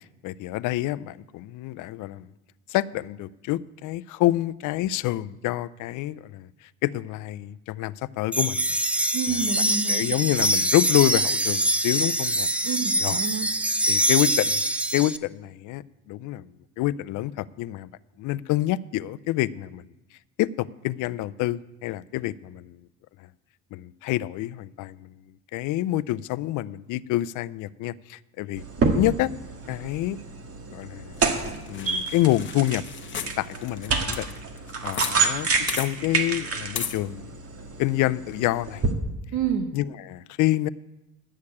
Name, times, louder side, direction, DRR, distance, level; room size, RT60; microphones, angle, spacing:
voice 1, 0.2-2.3 2.7-8.6 9.9-12.5 13.0-13.2 13.9-14.6 14.9-16.5 16.8-17.9 18.2-19.8 20.4-22.8 23.2-23.3 23.7-25.1 25.5-28.6 28.9-29.3 29.7-30.2 30.7-31.2 31.7-32.8 33.2-34.3 34.8-35.5 35.8-37.3 37.8-38.8 39.7-40.7, left 15 dB, 85° left, 17 dB, 0.5 m, -27 dB
sound 1, 8.3-15.2, right 1 dB, 5° right, 0.6 m, -24 dB
voice 2, 9.1-10.1 12.6-13.5 39.3-39.7, right 7 dB, 75° right, 5 dB, 1.3 m, -28 dB
sound 2, 28.6-38.9, right 4 dB, 50° right, 1.9 m, -29 dB
sound 3, 31.2-35.2 35.4-35.5 35.7-35.9 36.8-37.0, left 7 dB, 40° left, 1.2 m, -35 dB
11.5 x 6.5 x 8.5 m, 0.97 s
cardioid pair, 95°, 30 cm